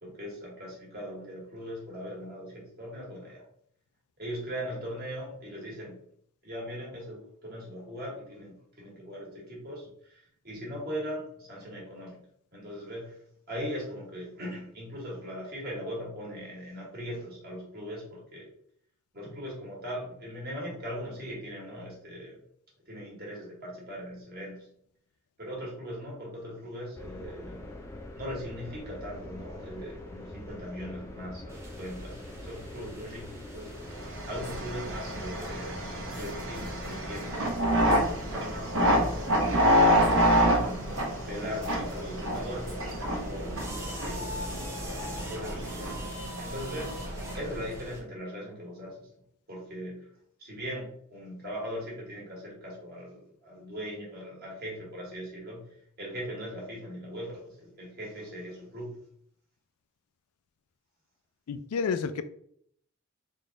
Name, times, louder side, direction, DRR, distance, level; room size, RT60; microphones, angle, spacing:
voice 1, 0.0-3.4 4.2-6.0 6.4-12.2 12.5-13.2 13.5-18.5 19.1-22.4 22.9-24.7 25.4-27.7 28.2-33.9 34.3-39.3 39.5-40.9 41.2-44.5 45.2-45.6 46.3-46.9 47.4-49.1 49.5-50.1 50.4-55.6 56.0-58.9, equal, 45° right, -4 dB, 1.5 m, -40 dB
sound 1, 26.9-46.1, left 1 dB, 10° left, 0.4 m, -44 dB
sound 2, 31.5-48.0, equal, 10° right, 0.8 m, -45 dB
sound 3, 33.9-47.8, equal, 70° right, 0.9 m, -28 dB
voice 2, 61.5-62.2, left 5 dB, 90° left, 12 dB, 0.4 m, -30 dB
3.7 x 2.4 x 3.9 m, 0.66 s
head